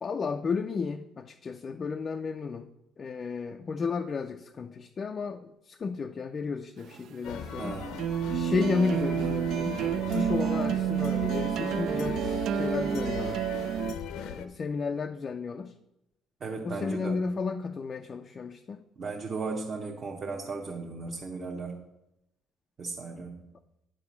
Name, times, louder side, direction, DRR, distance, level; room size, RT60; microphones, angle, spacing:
voice 1, 0.0-2.7 3.0-7.8 8.3-13.5 14.1-15.7 16.6-18.8, left 4 dB, 30° left, 5 dB, 0.4 m, -33 dB
sound 1, 6.8-13.9, right 9 dB, 50° right, 0.4 m, -29 dB
sound 2, 7.2-14.5, left 8 dB, 70° left, 0.7 m, -39 dB
voice 2, 7.6-8.2 16.4-17.2 19.0-21.8 22.8-23.5, right 4 dB, 30° right, 0 dB, 0.9 m, -36 dB
9.8 x 5.1 x 7.1 m, 0.89 s
cardioid pair, 160°, 0 cm